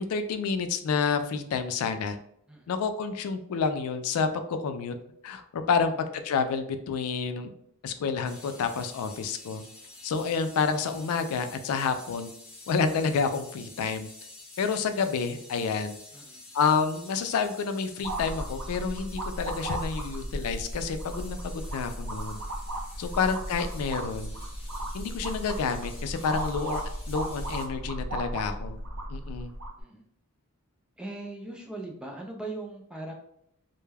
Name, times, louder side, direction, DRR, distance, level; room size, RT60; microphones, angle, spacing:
voice 1, 0.0-2.2 2.7-5.0 5.2-7.5 7.8-9.6 10.0-12.3 12.7-14.1 14.6-16.0 16.5-22.4 23.0-24.3 24.9-26.8 27.1-28.8 29.1-29.5, left 5 dB, 70° left, 9 dB, 0.3 m, -29 dB
sound 1, 8.2-27.7, left 2 dB, 25° left, 0.7 m, -49 dB
sound 2, 18.0-29.8, right 1 dB, 75° right, 0.6 m, -35 dB
voice 2, 31.0-33.1, right 2 dB, 5° right, 0 dB, 0.4 m, -40 dB
2.2 x 2.1 x 3.2 m, 0.70 s
head